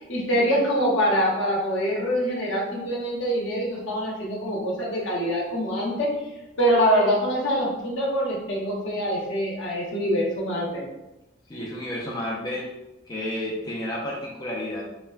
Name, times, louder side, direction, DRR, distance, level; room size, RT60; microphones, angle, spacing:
voice 1, 0.1-6.2 6.6-10.8, equal, 85° left, -4 dB, 0.8 m, -24 dB
voice 2, 11.5-12.7 13.1-14.8, left 1 dB, 20° left, -5 dB, 0.3 m, -31 dB
3.2 x 2.1 x 2.3 m, 0.99 s
head